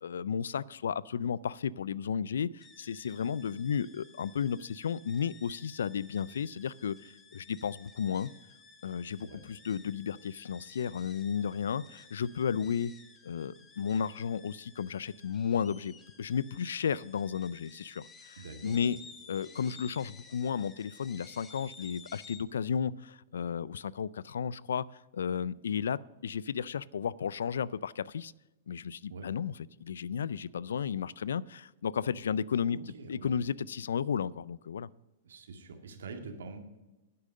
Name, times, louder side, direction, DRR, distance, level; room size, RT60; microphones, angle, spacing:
voice 1, 0.0-8.3 8.8-12.9 13.2-19.0 19.3-24.9 25.1-28.3 28.7-29.5 29.8-32.8 33.1-34.9, left 7 dB, 85° left, 22 dB, 0.3 m, -33 dB
sound 1, 2.6-22.4, left 4 dB, 20° left, 1.4 m, -55 dB
voice 2, 18.4-18.9 29.1-29.3 32.7-33.4 35.2-36.8, right 4 dB, 85° right, 5 dB, 1.9 m, -45 dB
10.5 x 8.5 x 6.5 m, 1.1 s
hypercardioid pair, 125°, 0 cm